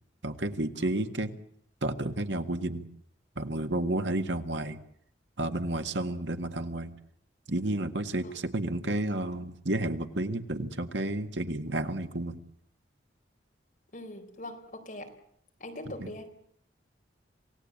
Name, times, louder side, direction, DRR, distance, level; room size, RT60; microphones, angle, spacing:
voice 1, 0.2-1.3 1.8-2.8 3.4-4.8 5.4-6.9 7.5-12.4 16.0-16.1, right 1 dB, 80° right, 7 dB, 1.7 m, -31 dB
voice 2, 13.9-15.1 15.6-16.3, left 1 dB, 45° left, 3 dB, 4.2 m, -42 dB
27.5 x 17.5 x 8.7 m, 0.68 s
head